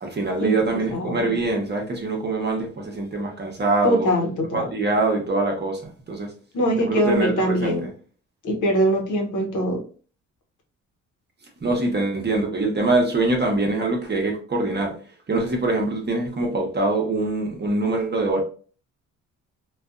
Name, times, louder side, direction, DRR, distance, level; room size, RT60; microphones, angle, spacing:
voice 1, 0.0-4.1 4.5-6.3 6.8-7.9 11.6-14.9 15.3-18.4, right 2 dB, 30° right, 0.9 m, -24 dB
voice 2, 0.9-1.3 3.8-4.7 6.5-7.9 8.4-9.8, equal, 70° left, 0.8 m, -22 dB
2.5 x 2.3 x 2.4 m
cardioid pair, 75°, 32 cm